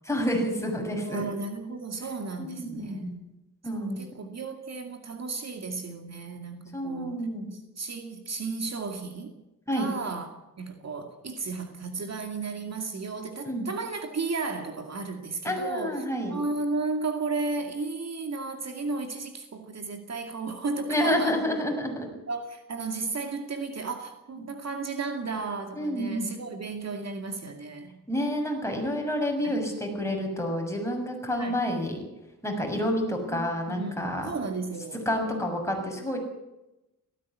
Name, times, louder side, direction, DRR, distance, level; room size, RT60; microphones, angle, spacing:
voice 1, 0.1-1.2 2.4-3.2 3.6-4.0 6.7-7.5 9.7-9.9 13.4-13.7 15.4-16.4 20.9-22.1 24.4-24.5 25.7-26.3 28.1-32.0 32.4-34.3 35.0-36.2, equal, 10° left, 2 dB, 6.6 m, -29 dB
voice 2, 1.0-3.2 3.7-7.2 7.5-9.3 9.7-21.4 22.3-27.9 29.4-29.6 31.4-31.6 33.3-35.0, right 4 dB, 50° right, 5 dB, 2.4 m, -34 dB
18.0 x 15.0 x 9.9 m, 0.97 s
wide cardioid pair, 100°, 33 cm